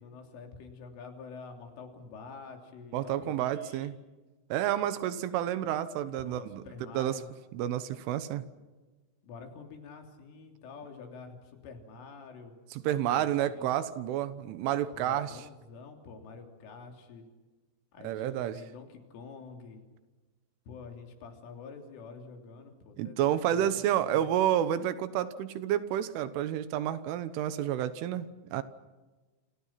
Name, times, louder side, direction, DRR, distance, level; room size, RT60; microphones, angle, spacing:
voice 1, 0.0-3.9 6.2-7.3 9.2-12.5 13.1-13.8 14.9-17.3 17.9-19.8 20.7-24.3, left 4 dB, 80° left, 3 dB, 5.8 m, -47 dB
voice 2, 2.9-4.0 4.5-6.6 7.0-7.1 7.5-8.5 12.7-15.3 18.0-18.6 23.0-28.6, right 11 dB, 80° right, 13 dB, 3.6 m, -30 dB
28.5 x 27.0 x 5.9 m, 1.2 s
omnidirectional pair, 5.6 m